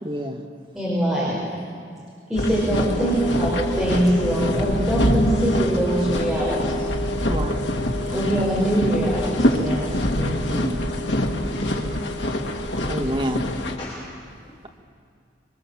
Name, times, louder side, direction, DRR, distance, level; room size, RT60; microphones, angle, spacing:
voice 1, 0.0-0.4 7.3-7.6 10.2-10.9 12.9-13.5, equal, 30° right, 2 dB, 2.0 m, -28 dB
voice 2, 0.7-1.4 2.3-6.9 8.1-10.1, right 1 dB, ahead, -8 dB, 5.7 m, -23 dB
sound 1, 2.3-13.8, left 1 dB, 90° left, 2.3 m, -24 dB
voice 3, 11.4-12.3 12.7-13.0 13.8-14.7, left 1 dB, 35° left, -7 dB, 3.9 m, -38 dB
26.0 x 23.5 x 7.3 m, 2.3 s
head